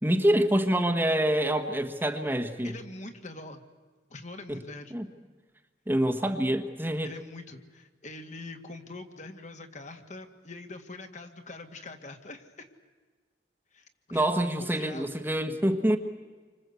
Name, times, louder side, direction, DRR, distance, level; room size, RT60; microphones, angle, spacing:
voice 1, 0.0-2.7 4.5-4.6 4.9-5.1 5.9-7.1 14.1-16.0, right 1 dB, 10° right, 7 dB, 1.4 m, -26 dB
voice 2, 2.6-3.6 4.1-4.9 7.0-12.7 13.7-15.1, left 2 dB, 45° left, 6 dB, 2.1 m, -44 dB
28.0 x 25.5 x 8.3 m, 1.4 s
head